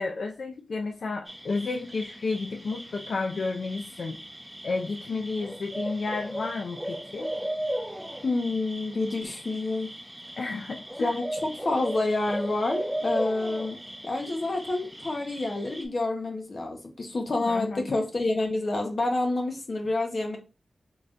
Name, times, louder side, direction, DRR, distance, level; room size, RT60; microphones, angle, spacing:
voice 1, 0.0-4.2 4.6-7.3 10.4-11.1 17.4-17.9, left 3 dB, 85° left, 3 dB, 0.4 m, -32 dB
sound 1, 1.3-15.8, right 1 dB, 5° right, 0.7 m, -37 dB
voice 2, 8.2-9.9 11.0-13.8 14.0-20.4, left 2 dB, 50° left, 3 dB, 0.9 m, -28 dB
3.9 x 3.2 x 2.5 m, 0.31 s
wide cardioid pair, 110°, 0 cm